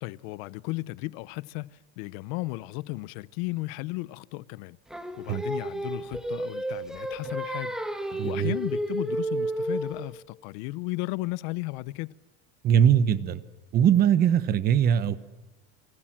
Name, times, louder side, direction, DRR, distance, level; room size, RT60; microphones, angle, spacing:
voice 1, 0.0-4.8 5.2-7.8 8.1-12.1, left 21 dB, 60° left, 0.8 m, -35 dB
Singing, 4.9-10.1, right 1 dB, ahead, 1.4 m, -32 dB
voice 2, 8.1-8.6 12.6-13.4 13.7-15.2, right 9 dB, 30° right, 1.1 m, -21 dB
29.5 x 24.5 x 7.5 m
cardioid pair, 175°, 32 cm